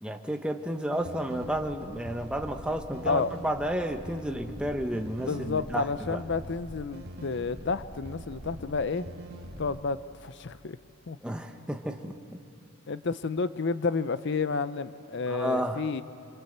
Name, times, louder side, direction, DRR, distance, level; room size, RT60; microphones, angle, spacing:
voice 1, 0.0-6.2 11.2-12.4 15.3-15.8, equal, 5° right, 4 dB, 1.1 m, -32 dB
sound 1, 0.9-9.8, right 1 dB, 50° right, 2.4 m, -43 dB
voice 2, 5.2-9.0 9.6-10.8 11.1-11.2 12.9-16.0, left 4 dB, 60° left, 14 dB, 0.6 m, -30 dB
26.5 x 25.5 x 8.0 m, 2.8 s
head